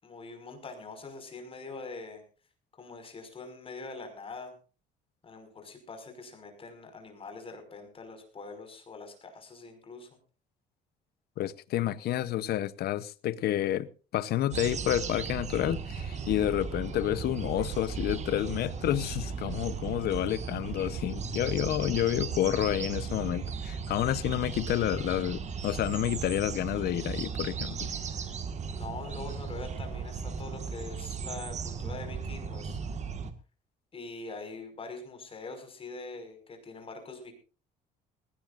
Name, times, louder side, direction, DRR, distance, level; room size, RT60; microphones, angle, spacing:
voice 1, 0.0-2.2 2.7-4.5 5.2-10.1 28.7-32.8 33.9-37.4, left 3 dB, 35° left, 5.6 m, -43 dB
voice 2, 11.4-13.9 14.1-27.9, left 12 dB, 70° left, 0.9 m, -29 dB
sound 1, 14.5-33.3, right 6 dB, 45° right, 1.7 m, -36 dB
19.5 x 17.0 x 2.6 m
cardioid pair, 110°, 17 cm